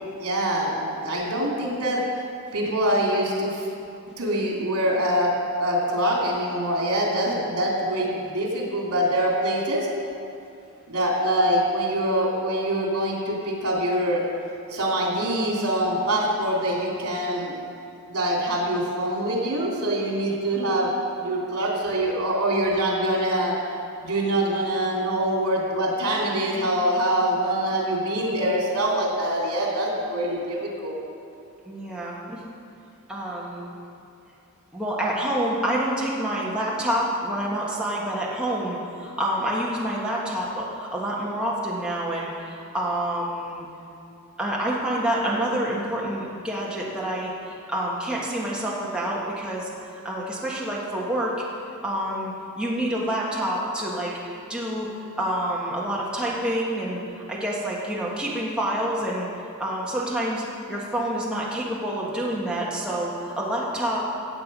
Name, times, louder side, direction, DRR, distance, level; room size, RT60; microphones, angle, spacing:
voice 1, 0.2-2.0 2.5-3.6 4.2-5.3 5.6-9.9 10.9-14.2 14.7-17.6 18.1-20.9 21.2-23.6 24.0-30.9, right 1 dB, 75° right, -2 dB, 2.8 m, -24 dB
voice 2, 31.6-32.4 33.1-33.7 34.7-43.7 44.4-47.3 47.7-49.7 50.0-51.3 51.8-54.1 54.5-54.9 55.2-57.0 57.3-59.3 59.6-64.0, right 1 dB, 5° right, -5 dB, 1.6 m, -27 dB
15.5 x 7.9 x 5.4 m, 2.6 s
head